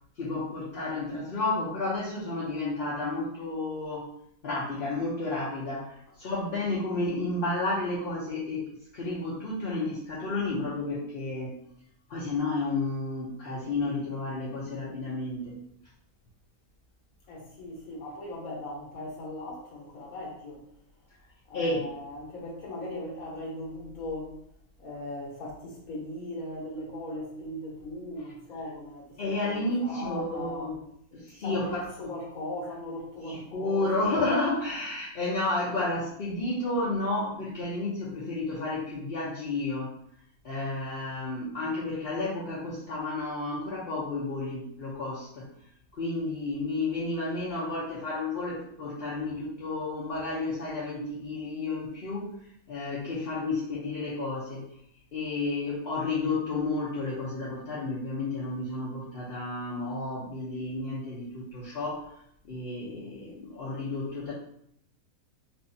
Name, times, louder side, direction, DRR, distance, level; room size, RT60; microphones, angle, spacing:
voice 1, 0.2-4.1 4.4-11.5 12.1-15.5 21.5-21.8 29.2-30.7 31.1-32.1 33.3-39.9 40.4-45.5 45.9-52.3 52.7-54.6 55.1-64.3, left 2 dB, 50° left, -7 dB, 0.8 m, -31 dB
voice 2, 17.3-20.6 21.5-24.4 24.8-30.7 31.4-34.1, left 1 dB, 75° left, -4 dB, 1.6 m, -38 dB
4.5 x 2.6 x 2.7 m, 0.70 s
omnidirectional pair, 1.5 m